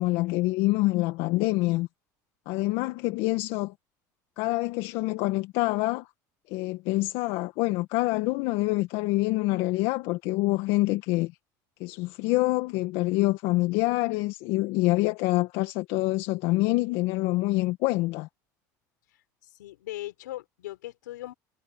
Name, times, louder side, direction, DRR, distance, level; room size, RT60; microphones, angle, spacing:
voice 1, 0.0-1.9 2.5-3.7 4.4-6.1 6.5-11.3 11.8-18.3, left 20 dB, 70° left, 1.8 m, -26 dB
voice 2, 19.4-21.3, left 16 dB, 90° left, 3.9 m, -39 dB
hypercardioid pair, 80°, 10 cm